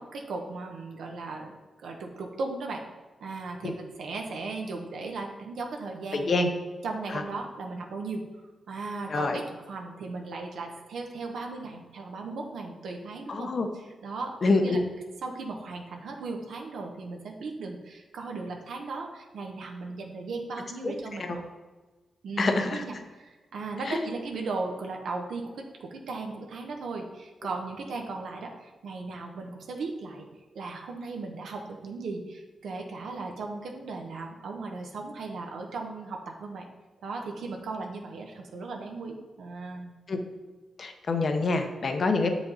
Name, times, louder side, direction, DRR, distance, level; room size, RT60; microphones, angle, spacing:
voice 1, 0.0-1.6 1.8-2.8 3.2-6.3 6.8-14.3 14.6-14.8 15.2-21.4 22.2-30.3 30.5-36.7 37.0-40.0, right 3 dB, 85° right, 2 dB, 0.9 m, -37 dB
voice 2, 6.1-6.5 7.1-7.2 9.1-9.4 13.3-13.7 14.4-14.8 20.8-20.9 21.2-21.4 22.4-22.8 23.9-24.0 40.1-40.2 40.8-42.3, left 3 dB, 50° left, 5 dB, 0.8 m, -26 dB
7.2 x 5.1 x 3.9 m, 1.3 s
wide cardioid pair, 110°, 0 cm